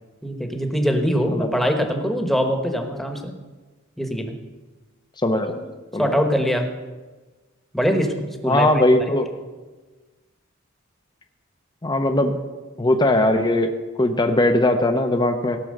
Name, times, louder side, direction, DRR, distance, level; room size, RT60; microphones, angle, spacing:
voice 1, 0.2-3.3 4.0-4.3 5.5-5.6 6.0-6.6 7.7-8.1 8.4-8.7, equal, ahead, 4 dB, 1.2 m, -22 dB
voice 2, 5.2-5.6 5.9-6.1 8.4-9.3 11.8-12.4 12.8-13.7 14.0-15.6, left 1 dB, 20° left, 6 dB, 0.8 m, -19 dB
17.0 x 6.1 x 6.6 m, 1.3 s
head